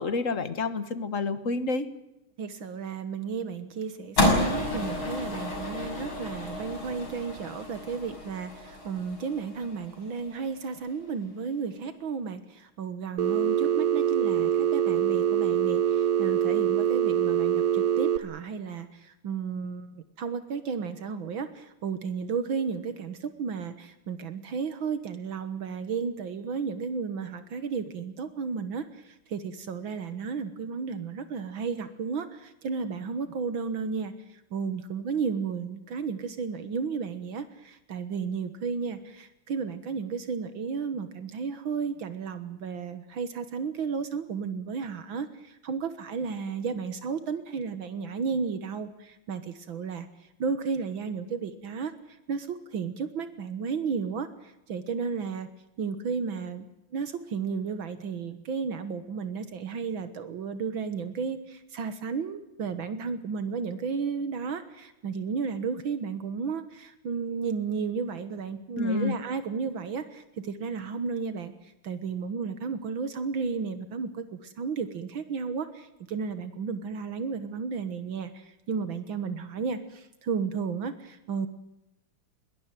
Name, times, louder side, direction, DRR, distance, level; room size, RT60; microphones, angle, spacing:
voice 1, 0.0-1.9 68.8-69.2, left 3 dB, 40° left, 12 dB, 1.7 m, -29 dB
voice 2, 2.4-50.1 50.4-51.9 52.3-55.5 55.8-56.7 56.9-71.5 71.8-81.5, right 5 dB, 75° right, 11 dB, 2.1 m, -33 dB
sound 1, 4.2-10.5, left 1 dB, 80° left, 6.9 m, -30 dB
Telephone, 13.2-18.2, right 9 dB, 50° right, 1.4 m, -24 dB
21.5 x 19.5 x 9.1 m, 0.91 s
omnidirectional pair, 2.2 m